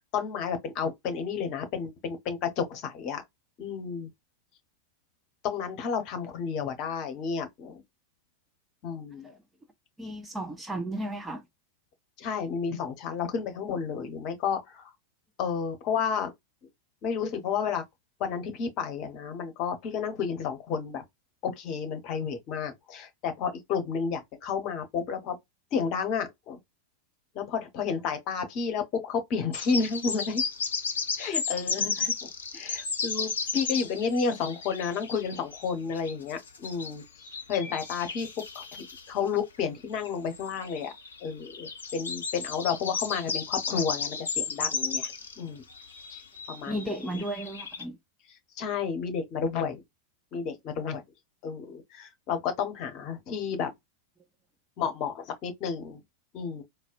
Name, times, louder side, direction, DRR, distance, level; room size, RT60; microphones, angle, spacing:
voice 1, 0.1-3.2 3.6-4.1 5.4-7.8 8.8-9.3 12.2-14.9 15.4-16.3 17.0-17.8 18.2-21.0 21.4-25.4 25.7-26.6 27.3-30.4 31.2-32.1 32.5-37.0 37.5-38.3 38.5-40.9 41.2-45.6 46.1-46.2 46.5-47.2 48.6-49.8 50.3-51.0 51.4-53.7 54.8-56.0 56.3-56.6, left 6 dB, 40° left, 1.0 m, -31 dB
voice 2, 10.0-11.4 46.7-48.0, right 1 dB, 10° right, 0.5 m, -34 dB
sound 1, 29.5-36.9 37.2-39.1 40.0-45.4 45.7-47.8, left 5 dB, 65° left, 0.7 m, -34 dB
4.0 x 2.2 x 2.5 m
figure-of-eight pair, 90°, 0 cm